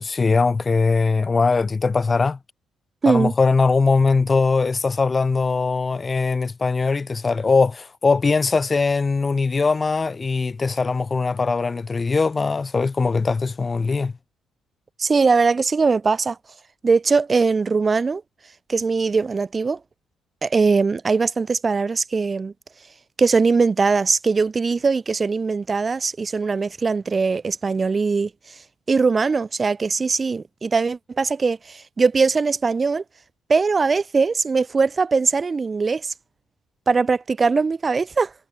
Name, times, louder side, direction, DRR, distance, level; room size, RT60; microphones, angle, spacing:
voice 1, 0.0-2.4 3.1-14.1, left 4 dB, 30° left, 0.4 m, -21 dB
voice 2, 15.0-16.4 16.8-18.2 18.7-19.8 20.4-22.5 23.2-28.6 28.9-33.0 33.5-36.1 36.9-38.3, right 4 dB, 30° right, 0.5 m, -21 dB
cardioid pair, 90°, 0 cm